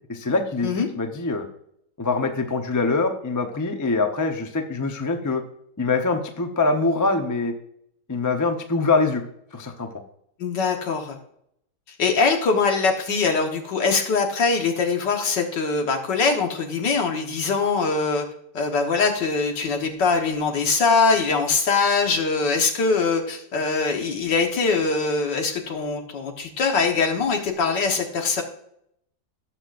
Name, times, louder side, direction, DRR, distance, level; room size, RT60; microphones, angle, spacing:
voice 1, 0.1-1.5 2.0-5.4 5.8-7.5 8.1-9.2 9.5-9.9, left 3 dB, 20° left, 5 dB, 0.5 m, -24 dB
voice 2, 10.4-11.2 12.0-18.2 18.5-28.4, left 4 dB, 75° left, 4 dB, 2.0 m, -22 dB
18.0 x 6.6 x 2.6 m, 0.73 s
omnidirectional pair, 1.9 m